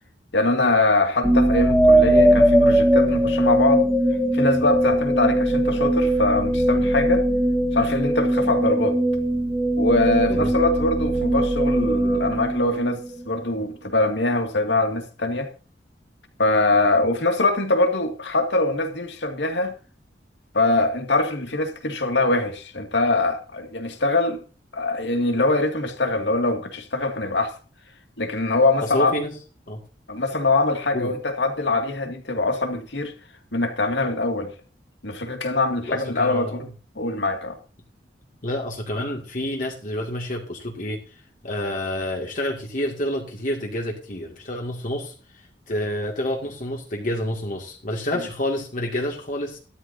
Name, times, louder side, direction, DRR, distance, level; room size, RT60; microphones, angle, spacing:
voice 1, 0.3-3.9 4.3-7.2 7.7-9.0 9.8-15.5 16.4-19.7 20.5-24.4 24.7-27.5 28.2-29.1 30.1-33.1 33.5-34.5 35.0-36.7 37.0-37.6, left 2 dB, 80° left, 2.3 m, -23 dB
sound 1, 1.2-13.3, right 1 dB, ahead, 2.1 m, -20 dB
voice 2, 28.8-29.3 29.7-29.8 30.9-31.1 35.9-36.6 38.4-41.0 41.4-45.1 45.7-49.6, left 1 dB, 50° left, 2.3 m, -28 dB
13.0 x 13.0 x 2.8 m
head